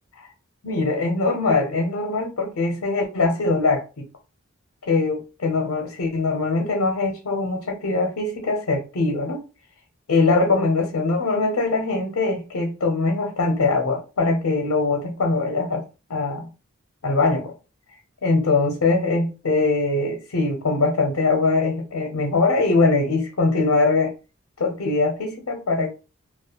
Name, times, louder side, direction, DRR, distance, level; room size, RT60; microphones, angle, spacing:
voice 1, 0.6-4.1 4.9-9.4 10.1-15.8 16.1-16.5 17.0-17.5 18.2-24.1 24.6-25.9, left 3 dB, 80° left, 0.6 m, -22 dB
2.4 x 2.1 x 2.8 m
head